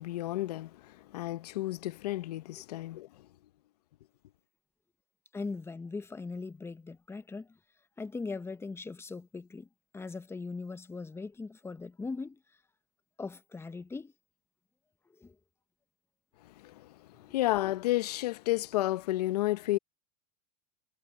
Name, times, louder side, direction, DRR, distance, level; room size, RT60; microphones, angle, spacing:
voice 1, 0.0-3.3 16.4-19.8, left 16 dB, 80° left, 1.0 m, -32 dB
voice 2, 5.3-7.6 8.0-9.7 9.9-12.4 13.2-14.1 15.2-15.3, left 4 dB, 10° left, 1.1 m, -40 dB
hypercardioid pair, 105°, 20 cm